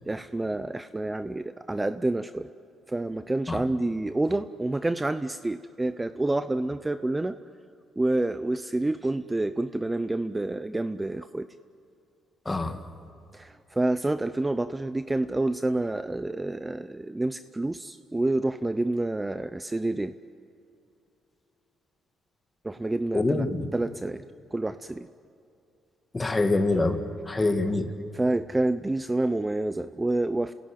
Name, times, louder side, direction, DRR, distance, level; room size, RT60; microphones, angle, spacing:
voice 1, 0.1-2.5 2.9-7.4 8.0-11.5 13.3-20.1 22.6-23.4 23.7-24.2 24.5-25.1 28.1-30.5, right 2 dB, 15° right, 12 dB, 0.6 m, -28 dB
voice 2, 12.5-12.8 23.1-23.7 26.1-27.0 27.3-27.9, left 2 dB, 20° left, 7 dB, 2.0 m, -25 dB
29.5 x 16.0 x 9.2 m, 2.6 s
cardioid pair, 90°, 0 cm